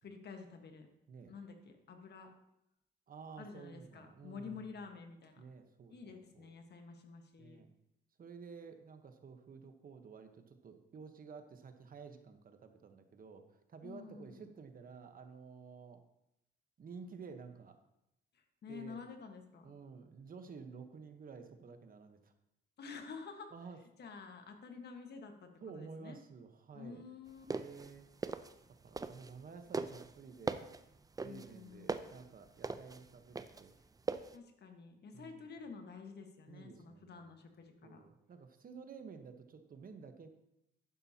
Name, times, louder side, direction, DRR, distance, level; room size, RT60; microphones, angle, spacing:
voice 1, 0.0-0.9 1.3-2.3 3.4-5.4 5.9-7.6 13.8-14.5 18.6-19.8 22.8-23.5 24.0-26.2 26.7-27.5 31.2-32.0 34.3-38.0, left 5 dB, 55° left, 5 dB, 1.4 m, -50 dB
voice 2, 3.1-4.7 5.4-6.5 7.4-7.7 8.2-16.0 16.8-17.8 18.7-19.0 19.6-22.3 23.5-23.8 25.6-27.1 27.5-28.1 28.8-30.6 31.2-33.7 35.1-35.5 36.5-37.4 37.8-40.3, right 5 dB, 45° right, 7 dB, 1.1 m, -52 dB
sound 1, 27.3-29.4 29.7-34.3, right 4 dB, 20° right, 0.5 m, -40 dB
11.0 x 10.0 x 2.9 m, 0.82 s
cardioid pair, 90°, 20 cm